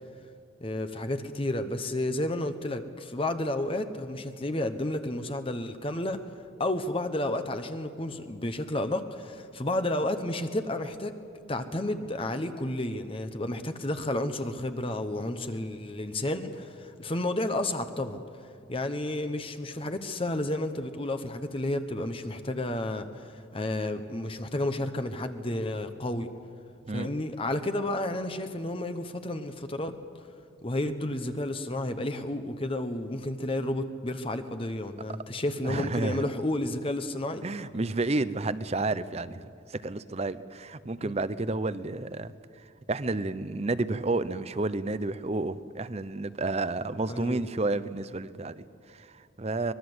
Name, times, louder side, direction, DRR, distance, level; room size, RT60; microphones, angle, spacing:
voice 1, 0.6-6.2 6.6-11.1 11.5-18.2 18.7-26.3 26.9-30.0 30.6-37.4 41.0-41.1 47.1-47.4, left 1 dB, 25° left, 8 dB, 1.0 m, -31 dB
voice 2, 35.6-36.3 37.4-42.3 42.9-49.7, right 2 dB, 30° right, 15 dB, 0.7 m, -31 dB
24.5 x 21.0 x 8.0 m, 2.3 s
head